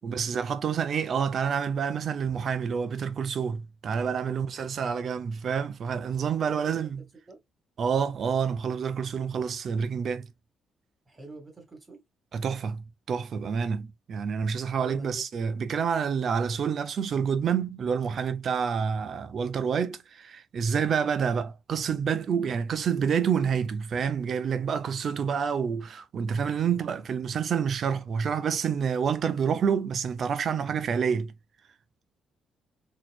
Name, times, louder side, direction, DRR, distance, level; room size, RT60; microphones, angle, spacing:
voice 1, 0.0-7.0 7.8-10.3 12.3-31.3, right 7 dB, 55° right, 0.7 m, -28 dB
voice 2, 4.1-4.4 4.6-5.0 6.4-6.8 7.3-7.4 11.1-12.0 14.6-15.2 26.7-27.0, right 2 dB, 25° right, 2.2 m, -47 dB
4.1 x 3.1 x 2.4 m
cardioid pair, 90°, 0 cm